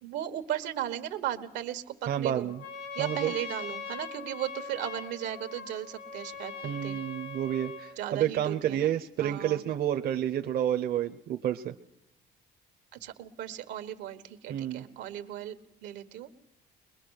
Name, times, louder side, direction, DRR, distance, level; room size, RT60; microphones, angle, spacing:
voice 1, 0.0-2.5 2.9-6.5 6.8-7.0 8.0-8.9 9.2-9.6 12.9-15.6 15.8-16.3, right 11 dB, 90° right, 9 dB, 1.5 m, -36 dB
voice 2, 2.1-2.6 3.0-3.3 6.6-11.7 14.5-14.9, right 10 dB, 60° right, 6 dB, 0.8 m, -30 dB
Trumpet, 2.5-8.0, left 5 dB, 80° left, 2.9 m, -41 dB
22.0 x 21.5 x 6.5 m, 0.81 s
cardioid pair, 120°, 18 cm